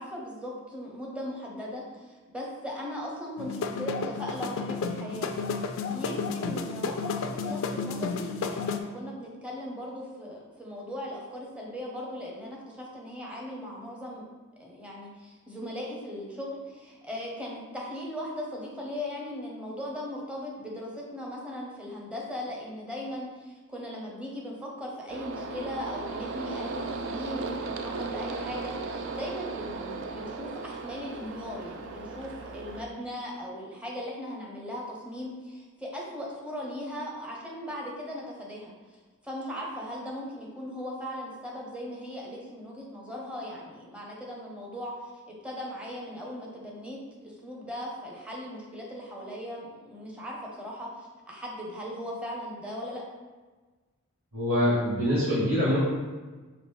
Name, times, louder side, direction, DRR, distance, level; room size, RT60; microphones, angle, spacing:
voice 1, 0.0-5.3 5.9-14.3 14.6-39.0 39.2-45.0 45.3-53.0, left 1 dB, 5° right, -3 dB, 0.8 m, -38 dB
sound 1, 3.4-8.8, left 4 dB, 70° left, 0.3 m, -32 dB
sound 2, 25.1-32.8, right 3 dB, 60° right, 0.4 m, -36 dB
voice 2, 54.3-55.8, equal, 85° right, -13 dB, 1.5 m, -24 dB
5.1 x 2.9 x 3.2 m, 1.3 s
head